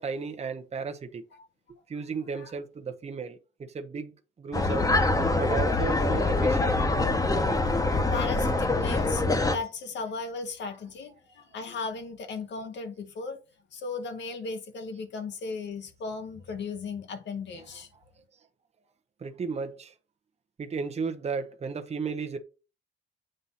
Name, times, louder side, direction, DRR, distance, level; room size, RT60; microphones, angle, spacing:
voice 1, 0.0-1.2 1.9-4.1 4.4-4.9 5.4-6.9 17.7-17.8 19.2-19.9 20.6-22.4, right 5 dB, 35° right, 0.8 m, -34 dB
sound 1, 4.5-9.5, left 2 dB, 15° left, 1.0 m, -24 dB
voice 2, 7.9-9.2 9.5-13.4 13.7-17.9, left 4 dB, 65° left, 1.0 m, -36 dB
7.7 x 2.7 x 5.6 m
cardioid pair, 90°, 20 cm